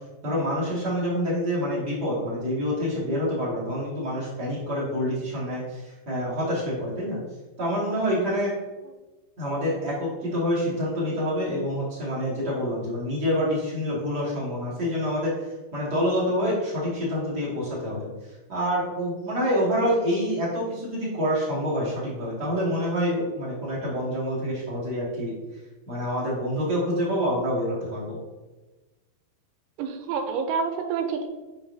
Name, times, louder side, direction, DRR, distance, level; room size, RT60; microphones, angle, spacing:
voice 1, 0.2-7.2 7.6-8.5 9.4-15.3 15.7-18.1 18.5-25.3 25.9-28.2, equal, 35° right, -8 dB, 1.7 m, -27 dB
voice 2, 29.8-31.3, right 5 dB, 85° right, 5 dB, 3.0 m, -28 dB
7.2 x 5.7 x 2.7 m, 1.2 s
omnidirectional pair, 5.4 m